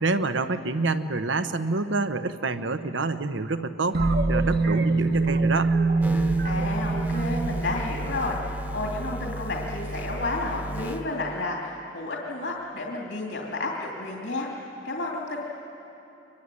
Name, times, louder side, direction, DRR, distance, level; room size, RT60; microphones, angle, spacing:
voice 1, 0.0-5.7, right 3 dB, 75° right, 10 dB, 1.0 m, -27 dB
sound 1, 3.9-8.6, right 3 dB, 55° right, 1.2 m, -24 dB
sound 2, 6.0-11.4, right 1 dB, 10° right, 1.1 m, -34 dB
voice 2, 6.1-14.5 14.8-15.5, left 2 dB, 65° left, -1 dB, 2.8 m, -31 dB
24.5 x 22.5 x 10.0 m, 3.0 s
head